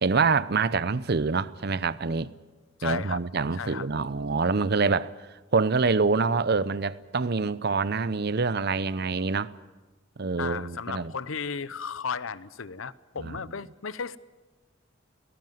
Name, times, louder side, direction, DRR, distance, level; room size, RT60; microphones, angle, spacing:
voice 1, 0.0-2.3 2.8-9.5 10.2-11.1 13.2-13.4, right 4 dB, 50° right, 0.7 m, -26 dB
voice 2, 2.8-3.2 3.5-3.9 10.4-14.2, left 5 dB, 80° left, 0.8 m, -34 dB
19.0 x 17.5 x 9.4 m
head